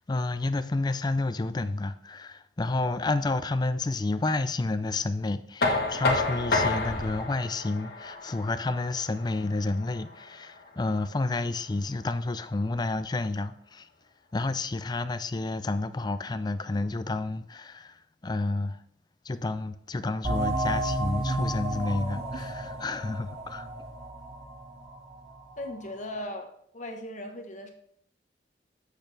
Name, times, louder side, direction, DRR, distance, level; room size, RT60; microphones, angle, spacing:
voice 1, 0.1-13.9 14.3-18.8 19.2-23.7, left 2 dB, 25° left, 0.4 m, -30 dB
Knock, 5.6-11.4, left 3 dB, 60° left, 1.5 m, -30 dB
sound 1, 20.2-25.5, right 1 dB, 35° right, 2.1 m, -32 dB
voice 2, 25.6-27.7, left 1 dB, 45° left, 1.1 m, -38 dB
8.1 x 6.7 x 3.3 m
head